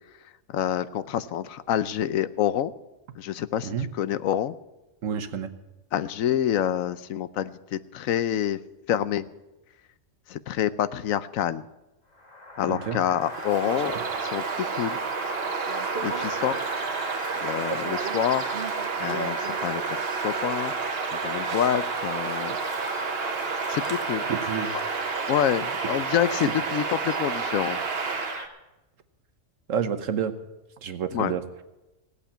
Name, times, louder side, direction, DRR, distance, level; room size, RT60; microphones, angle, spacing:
voice 1, 0.5-2.7 3.2-4.6 5.9-8.6 8.9-9.2 10.3-11.6 12.6-15.0 16.0-16.9 17.4-18.5 19.0-22.6 23.7-24.3 25.3-27.8 31.1-31.3, left 10 dB, 90° left, 15 dB, 1.1 m, -27 dB
voice 2, 5.0-5.5 12.7-13.0 24.3-24.7 29.7-30.3 30.8-31.4, right 7 dB, 75° right, 10 dB, 1.4 m, -29 dB
sound 1, 12.2-28.5, left 1 dB, 30° left, 1.9 m, -37 dB
Bird vocalization bird call bird song, 13.2-28.5, right 6 dB, 55° right, 1.1 m, -30 dB
17.0 x 8.5 x 8.6 m, 1.0 s
omnidirectional pair, 1.4 m